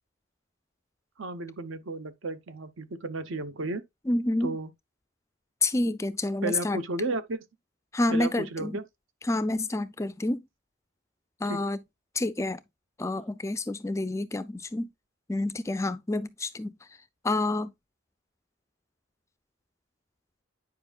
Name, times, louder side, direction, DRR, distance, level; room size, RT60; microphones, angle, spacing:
voice 1, 1.2-3.8 4.4-4.7 6.4-7.4 8.1-8.8 11.5-11.6, right 2 dB, 70° right, 0.9 m, -33 dB
voice 2, 4.1-4.6 5.6-6.8 7.9-8.8 9.2-10.4 11.4-11.8 12.1-12.6 13.0-14.9 15.3-16.8 17.2-17.7, left 2 dB, 15° left, 0.3 m, -28 dB
9.6 x 5.2 x 2.4 m
head